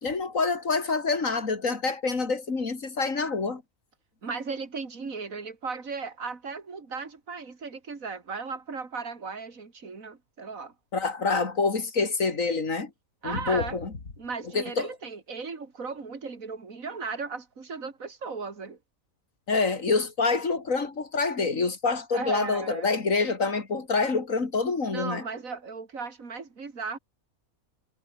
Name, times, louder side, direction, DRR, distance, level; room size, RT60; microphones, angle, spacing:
voice 1, 0.0-3.6 10.9-12.9 13.2-13.9 14.5-14.9 19.5-25.2, left 4 dB, 65° left, 3.3 m, -26 dB
voice 2, 4.2-10.7 13.2-13.8 14.2-18.8 22.1-22.9 24.8-27.0, right 4 dB, 70° right, 3.1 m, -36 dB
omnidirectional pair, 1.5 m